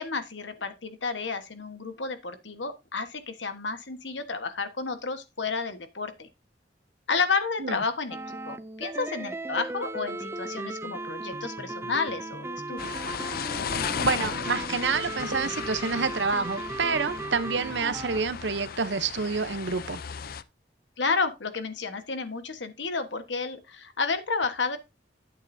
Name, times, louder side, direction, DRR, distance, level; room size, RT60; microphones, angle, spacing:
voice 1, 0.0-6.3 7.1-12.9 21.0-24.8, left 4 dB, 85° left, 1.4 m, -31 dB
sound 1, 8.1-18.2, right 2 dB, 15° right, 0.5 m, -36 dB
sound 2, 12.8-20.4, left 7 dB, 55° left, 0.5 m, -35 dB
voice 2, 13.7-20.0, right 5 dB, 75° right, 0.8 m, -28 dB
9.8 x 8.7 x 2.7 m
head